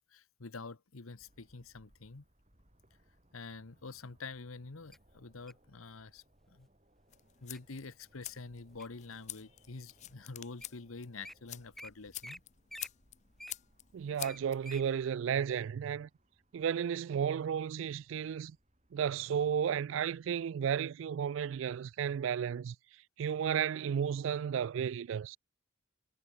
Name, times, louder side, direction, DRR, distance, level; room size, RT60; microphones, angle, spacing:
voice 1, 0.1-2.2 3.3-6.2 6.5-6.7 7.4-12.4, left 3 dB, 90° left, 1.2 m, -47 dB
sound 1, 1.2-20.5, right 1 dB, 35° right, 7.2 m, -70 dB
Wild animals, 4.9-5.7 6.4-6.7 7.1-7.6 8.1-9.1 9.6-9.7 10.3-10.4 10.6-10.8 11.0-11.3 11.8-11.9 12.2-12.4 12.7-14.9 15.3-15.4, equal, ahead, 1.2 m, -49 dB
sound 2, 7.1-15.1, left 15 dB, 35° left, 0.3 m, -48 dB
voice 2, 13.9-16.1 16.5-18.6 18.9-22.8 23.2-25.4, right 8 dB, 65° right, 0.3 m, -33 dB
head